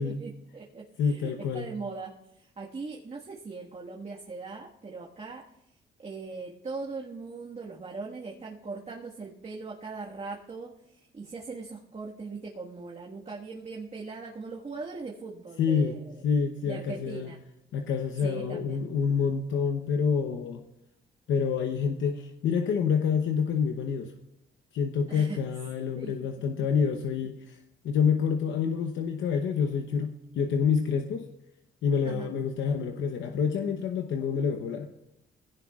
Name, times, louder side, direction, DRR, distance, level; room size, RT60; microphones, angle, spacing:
voice 1, 0.0-5.4 6.0-16.2 16.6-17.4 18.2-18.8 25.1-25.4 26.0-26.3 32.0-32.3, right 4 dB, 30° right, -3 dB, 1.6 m, -40 dB
voice 2, 1.0-1.7 15.6-16.0 16.2-17.3 17.7-20.6 21.3-24.1 24.7-27.6 27.8-31.2 31.8-34.9, left 6 dB, 75° left, 5 dB, 0.9 m, -27 dB
19.5 x 16.5 x 2.4 m, 0.83 s
cardioid pair, 90°, 20 cm